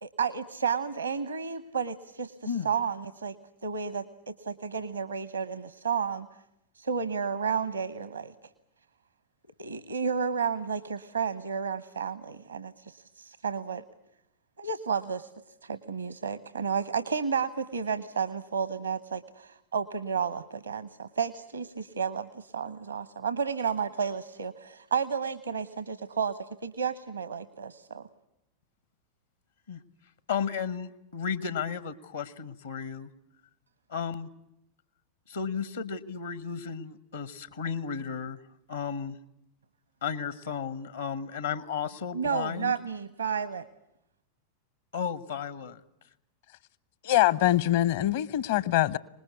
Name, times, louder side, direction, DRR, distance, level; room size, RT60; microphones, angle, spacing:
voice 1, 0.0-3.4 3.6-4.1 4.4-6.3 6.8-8.3 9.6-13.8 14.6-15.3 15.6-28.1 42.1-43.7, right 6 dB, 75° right, 1.0 m, -32 dB
voice 2, 2.4-2.8 29.7-29.8 30.3-33.1 33.9-34.3 35.3-38.4 38.7-39.2 40.0-42.8 44.9-45.8, left 6 dB, 70° left, 1.2 m, -34 dB
voice 3, 47.0-49.0, left 14 dB, 55° left, 0.8 m, -23 dB
25.0 x 20.0 x 8.2 m
figure-of-eight pair, 90°, 0 cm